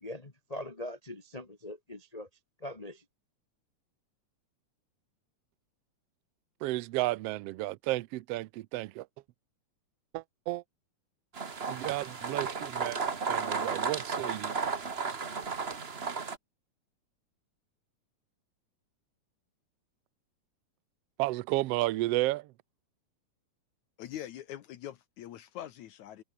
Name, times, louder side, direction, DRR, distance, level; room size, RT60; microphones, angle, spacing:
voice 1, 0.0-2.3 2.6-3.0, left 1 dB, 40° left, 0.5 m, -42 dB
voice 2, 6.6-9.1 10.1-10.6 11.7-13.0 13.3-14.5 21.2-22.5, right 18 dB, 85° right, 1.4 m, -32 dB
sound 1, 11.3-16.4, right 5 dB, 40° right, 0.9 m, -34 dB
voice 3, 24.0-26.2, left 12 dB, 75° left, 2.4 m, -43 dB
omnidirectional pair, 3.5 m